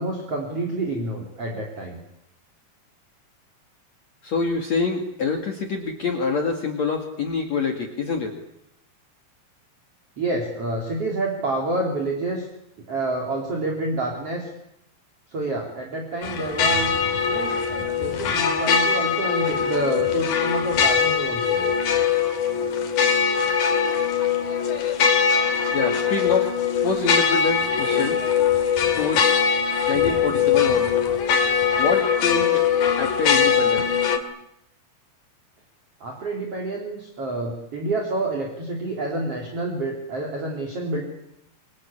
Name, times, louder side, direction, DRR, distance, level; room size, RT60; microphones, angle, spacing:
voice 1, 0.0-2.0 10.2-12.5 12.9-14.5 15.3-16.9 17.2-17.6 17.9-21.7 36.0-41.0, right 2 dB, 40° right, 0 dB, 4.3 m, -28 dB
voice 2, 4.2-8.4 25.7-26.5 26.8-28.2 29.0-29.4 29.9-30.9 31.8-32.6 33.0-33.9, left 4 dB, 50° left, 3 dB, 3.1 m, -25 dB
sound 1, 16.2-34.2, left 7 dB, 65° left, 4.0 m, -21 dB
27.0 x 23.5 x 8.7 m, 0.82 s
omnidirectional pair, 4.4 m